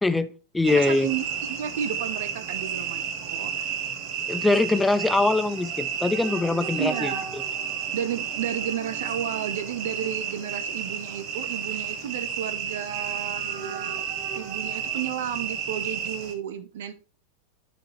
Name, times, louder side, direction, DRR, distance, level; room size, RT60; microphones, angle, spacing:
voice 1, 0.0-1.1 4.3-7.4, left 2 dB, 5° left, 0.5 m, -23 dB
sound 1, 0.6-16.3, right 7 dB, 40° right, 1.6 m, -32 dB
voice 2, 0.7-3.7 6.8-7.3 7.9-14.0 14.3-16.9, right 9 dB, 55° right, 0.7 m, -32 dB
11.0 x 5.1 x 3.1 m
figure-of-eight pair, 90°, 0 cm